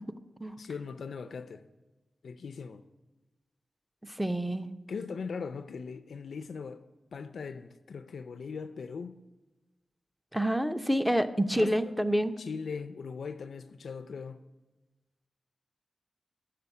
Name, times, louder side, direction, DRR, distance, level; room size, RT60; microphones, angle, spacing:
voice 1, 0.6-1.6 2.2-2.8 4.9-6.8 7.1-9.2 11.5-11.9 12.4-14.4, left 5 dB, 85° left, 0.4 m, -40 dB
voice 2, 4.2-4.7 10.3-12.3, equal, ahead, 0.5 m, -27 dB
7.7 x 6.6 x 8.2 m
wide cardioid pair, 155°, 0 cm